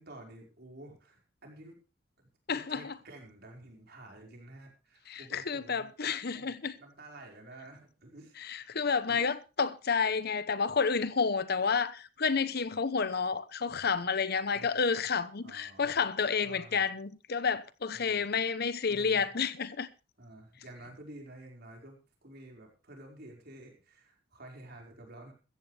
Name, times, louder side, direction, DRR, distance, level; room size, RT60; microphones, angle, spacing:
voice 1, 0.0-1.8 2.5-5.9 6.3-8.8 9.1-9.3 14.5-14.8 15.4-15.9 16.4-16.8 17.9-18.2 18.9-19.3 20.2-25.3, right 1 dB, 55° right, 5.1 m, -51 dB
voice 2, 2.5-2.9 5.1-6.7 8.4-19.9, left 5 dB, 55° left, 0.9 m, -30 dB
16.0 x 14.0 x 3.4 m
head